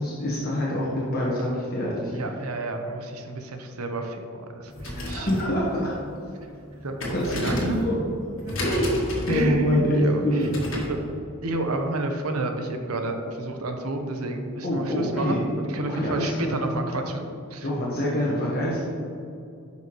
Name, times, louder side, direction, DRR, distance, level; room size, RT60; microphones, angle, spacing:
voice 1, 0.0-2.1 4.9-6.0 7.1-7.9 8.6-10.8 14.6-15.4 15.9-16.6 17.6-18.8, left 1 dB, 40° left, -6 dB, 1.3 m, -25 dB
voice 2, 2.1-5.3 5.7-5.8 6.8-7.8 8.4-8.6 9.3-10.5 10.9-11.0 11.4-17.2 17.5-17.7, right 2 dB, 90° right, 5 dB, 0.9 m, -30 dB
sound 1, 4.6-11.0, equal, 60° left, 1.8 m, -33 dB
10.5 x 5.7 x 3.1 m, 2.5 s
head